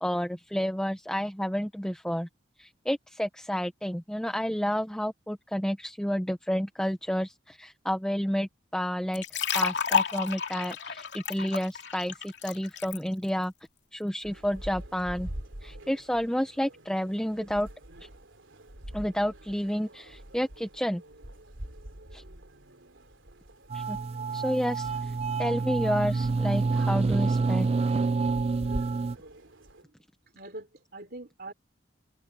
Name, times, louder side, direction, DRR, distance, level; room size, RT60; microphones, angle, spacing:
voice 1, 0.0-2.3 2.6-9.2 9.5-13.5 13.9-15.3 15.6-17.7 18.0-18.1 18.9-21.0 22.1-22.2 23.7-24.0 24.3-25.1 25.4-27.7, equal, 5° left, 0.7 m, -30 dB
sound 1, 9.1-13.0, left 7 dB, 65° left, 2.6 m, -30 dB
sound 2, 14.2-29.8, right 1 dB, 85° right, 3.2 m, -45 dB
sound 3, 23.7-29.2, right 4 dB, 30° right, 0.3 m, -27 dB
voice 2, 30.3-31.5, right 2 dB, 50° right, 3.3 m, -43 dB
head